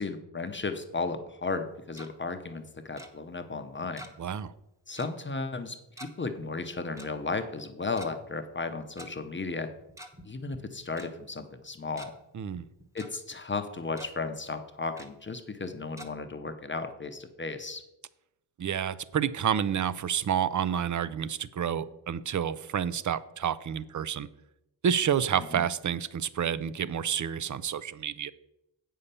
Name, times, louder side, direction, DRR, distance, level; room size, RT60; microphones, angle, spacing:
voice 1, 0.0-4.1 4.9-9.7 10.2-12.1 12.9-17.8 25.5-25.6, left 3 dB, 25° left, 7 dB, 0.7 m, -35 dB
Tick-tock, 1.7-2.1 3.0-3.1 4.0-4.3 4.6-4.7 5.0-5.2 6.0-6.1 7.0-7.1 7.8-8.1 9.0-9.1 9.8-10.2 10.5-10.6 11.0-11.1 11.6-12.1 12.6-13.1 13.5-13.6 13.9-14.1 15.0-15.1 16.0-16.1, right 1 dB, 5° right, 1.0 m, -46 dB
voice 2, 4.2-4.5 12.3-12.6 18.6-24.3 24.8-28.3, right 8 dB, 40° right, 17 dB, 0.5 m, -29 dB
8.5 x 5.6 x 6.7 m, 0.87 s
wide cardioid pair, 115°, 45 cm